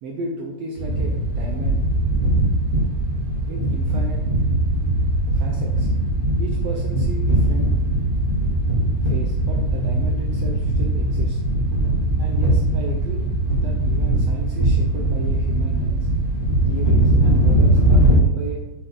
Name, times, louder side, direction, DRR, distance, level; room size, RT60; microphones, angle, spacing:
voice 1, 0.0-1.8 3.5-4.2 5.3-5.9 6.4-7.7 9.0-11.4 12.2-13.3 13.6-16.1 16.6-18.6, right 3 dB, 85° right, 1 dB, 1.4 m, -34 dB
sound 1, 0.8-18.2, right 1 dB, 10° right, 2.5 m, -20 dB
8.6 x 6.8 x 3.9 m, 1.1 s
omnidirectional pair, 4.0 m